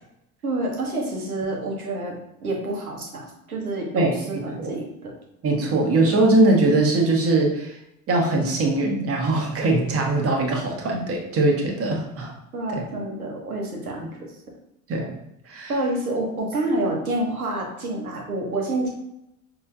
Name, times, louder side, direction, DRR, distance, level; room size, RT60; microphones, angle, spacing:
voice 1, 0.4-2.1 2.4-5.1 5.7-5.8 12.5-14.1 15.7-18.9, right 2 dB, 90° right, 0 dB, 1.0 m, -28 dB
voice 2, 3.9-4.7 5.4-7.7 8.1-12.3 12.7-12.9 14.0-14.1 14.9-15.1 15.5-15.7, right 2 dB, 35° right, 1 dB, 1.0 m, -21 dB
5.3 x 2.9 x 2.4 m, 0.83 s
figure-of-eight pair, 65°, 42 cm